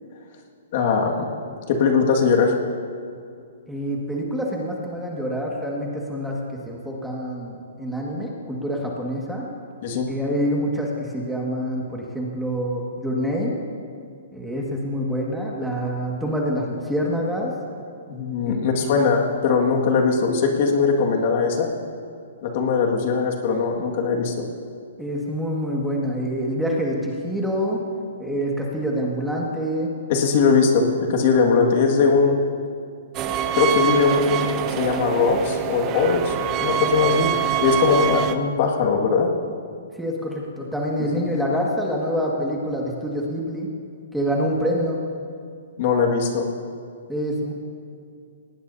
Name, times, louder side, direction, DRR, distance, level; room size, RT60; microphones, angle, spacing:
voice 1, 0.7-1.3 1.7-2.6 9.8-10.1 18.1-21.7 22.4-24.4 30.1-32.4 33.5-36.3 36.6-37.3 37.6-39.3 45.8-46.5, left 5 dB, 50° left, 1 dB, 1.9 m, -20 dB
voice 2, 3.7-9.5 10.1-13.6 14.3-17.5 18.5-19.0 25.0-27.8 28.2-29.9 40.0-43.7 44.1-45.0 47.1-47.5, equal, ahead, -3 dB, 1.8 m, -26 dB
sound 1, 33.1-38.3, right 10 dB, 25° right, 0.6 m, -25 dB
18.5 x 18.5 x 2.8 m, 2.3 s
hypercardioid pair, 150°, 0 cm